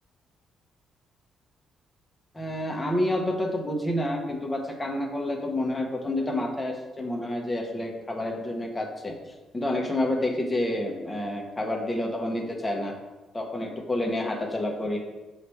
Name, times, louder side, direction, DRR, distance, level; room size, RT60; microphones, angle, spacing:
voice 1, 2.3-9.1 9.5-12.9 13.3-15.0, left 1 dB, 15° left, 1 dB, 1.0 m, -29 dB
5.7 x 3.2 x 5.6 m, 1.1 s
cardioid pair, 90°, 0 cm